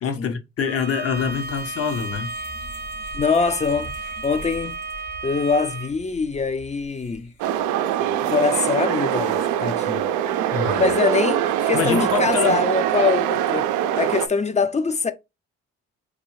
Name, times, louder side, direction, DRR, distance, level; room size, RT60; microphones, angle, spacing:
voice 1, 0.0-2.3 10.5-10.9 11.7-12.6, left 7 dB, 50° left, 0.9 m, -25 dB
Bowed string instrument, 0.6-5.9, right 3 dB, 30° right, 0.6 m, -33 dB
sound 1, 1.0-7.6, left 1 dB, 75° left, 2.2 m, -43 dB
voice 2, 3.1-4.8 5.2-7.3 8.0-10.0 10.7-13.7 14.0-15.1, left 4 dB, 25° left, 0.5 m, -23 dB
sound 2, 7.4-14.3, right 11 dB, 85° right, 0.5 m, -23 dB
3.9 x 2.7 x 3.0 m
supercardioid pair, 75°, 30 cm